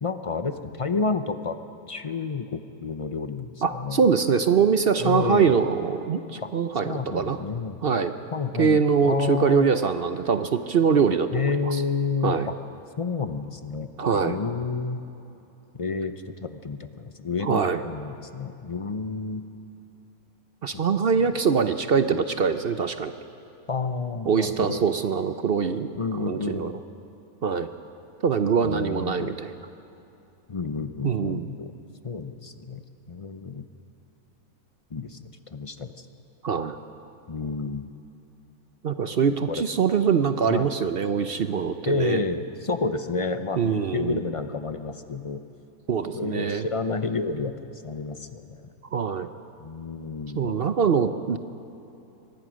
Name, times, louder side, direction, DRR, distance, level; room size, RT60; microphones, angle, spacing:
voice 1, 0.0-1.6 1.9-4.0 5.0-5.6 6.4-6.5 6.8-7.8 8.3-9.7 11.3-12.5 13.0-15.0 15.7-16.1 16.4-19.4 20.7-20.8 23.7-24.8 25.9-26.7 28.6-29.4 30.5-31.7 32.0-33.7 34.9-35.2 35.5-36.1 37.3-37.9 39.5-39.6 40.5-40.7 41.9-45.4 46.0-47.5 47.8-48.7 49.6-50.6, left 4 dB, 35° left, 9 dB, 0.5 m, -30 dB
voice 2, 3.6-7.4 7.8-8.1 8.6-11.8 12.2-12.5 14.0-14.4 17.4-17.8 20.6-23.1 24.3-25.9 26.1-26.7 27.4-27.7 28.2-29.5 31.0-31.5 36.4-36.8 38.8-42.2 43.6-44.2 45.9-46.7 48.9-49.3 50.3-51.4, right 6 dB, 50° right, 10 dB, 0.7 m, -23 dB
24.0 x 19.5 x 6.3 m, 2.9 s
omnidirectional pair, 1.6 m